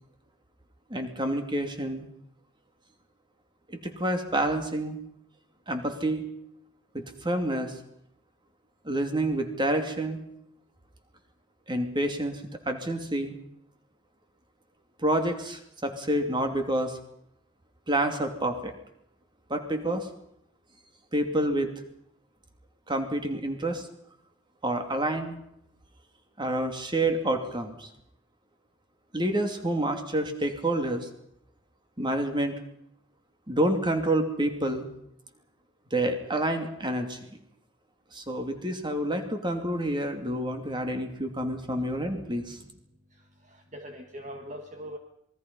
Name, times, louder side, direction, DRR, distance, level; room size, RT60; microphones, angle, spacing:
voice 1, 0.9-2.1 3.8-5.0 5.7-6.3 6.9-7.7 8.8-10.2 11.7-13.3 15.0-17.0 17.9-18.7 19.5-20.1 21.1-21.7 22.9-23.9 24.6-25.4 26.4-27.9 29.1-31.1 32.0-32.5 33.5-34.9 35.9-37.2 38.1-42.6, right 1 dB, 25° right, 5 dB, 2.8 m, -28 dB
voice 2, 43.1-45.0, equal, 40° right, 4 dB, 1.7 m, -42 dB
27.0 x 21.0 x 5.6 m, 0.74 s
head